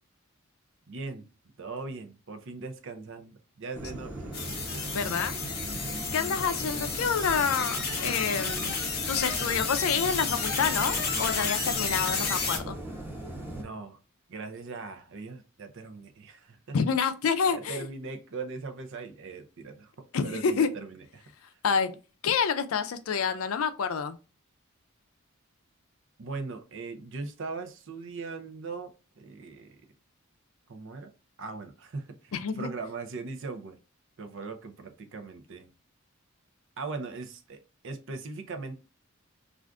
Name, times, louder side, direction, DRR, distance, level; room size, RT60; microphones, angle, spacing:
voice 1, 0.9-1.3 1.6-4.9 13.6-14.0 14.3-16.8 17.5-19.9 20.2-21.2 26.2-29.8 30.7-31.1 31.4-33.8 34.2-35.7 36.8-38.7, right 4 dB, 60° right, 0.5 m, -40 dB
sound 1, 3.7-13.6, right 1 dB, 10° right, 0.8 m, -38 dB
sound 2, 4.3-12.6, left 5 dB, 50° left, 0.9 m, -32 dB
voice 2, 4.9-5.3 6.1-8.8 9.1-12.8 16.7-17.9 20.1-20.7 21.6-21.9 22.2-24.2 32.3-32.7, left 6 dB, 80° left, 0.4 m, -28 dB
2.5 x 2.4 x 3.3 m
head